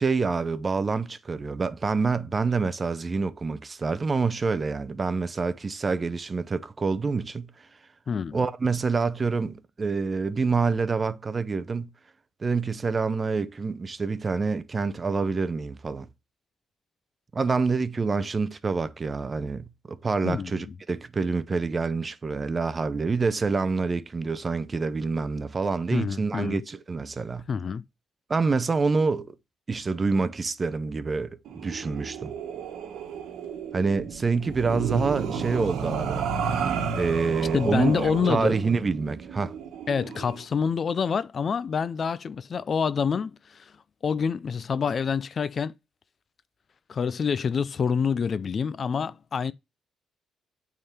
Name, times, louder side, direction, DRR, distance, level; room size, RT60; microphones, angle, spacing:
voice 1, 0.0-7.5 8.3-11.9 12.4-16.1 17.3-27.4 28.3-29.3 29.7-32.3 33.7-36.3 37.0-37.9 38.2-39.5, right 4 dB, 30° right, 0.7 m, -27 dB
voice 2, 8.1-8.4 20.2-20.7 25.9-26.6 27.5-27.8 37.5-38.5 39.9-43.7 44.0-45.7 46.9-49.5, left 6 dB, 45° left, 0.5 m, -27 dB
sound 1, 31.5-40.4, right 6 dB, 80° right, 1.2 m, -32 dB
8.7 x 3.8 x 4.2 m
cardioid pair, 90°, 0 cm